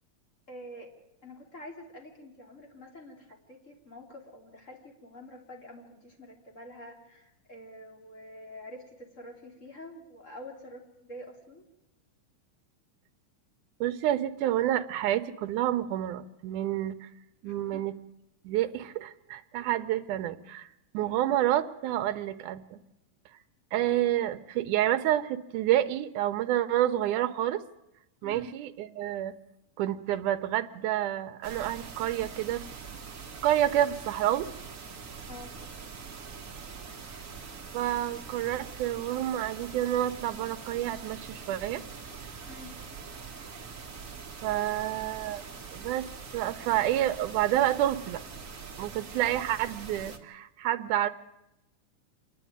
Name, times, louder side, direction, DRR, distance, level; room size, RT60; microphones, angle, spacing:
voice 1, 0.5-0.9 1.2-11.7 17.4-17.8 21.0-21.2 28.2-28.5 35.3-35.5 42.5-42.7, left 1 dB, 25° left, 1 dB, 3.1 m, -47 dB
voice 2, 13.8-17.1 17.4-18.0 18.4-20.7 20.9-22.8 23.7-27.6 28.2-29.3 29.8-32.7 33.4-34.5 37.7-41.8 44.4-45.4 45.7-46.0 46.3-48.2 48.8-51.1, right 12 dB, 80° right, 11 dB, 2.3 m, -29 dB
sound 1, 31.4-50.2, right 5 dB, 35° right, 1.3 m, -43 dB
26.5 x 11.0 x 9.4 m, 0.90 s
omnidirectional pair, 3.6 m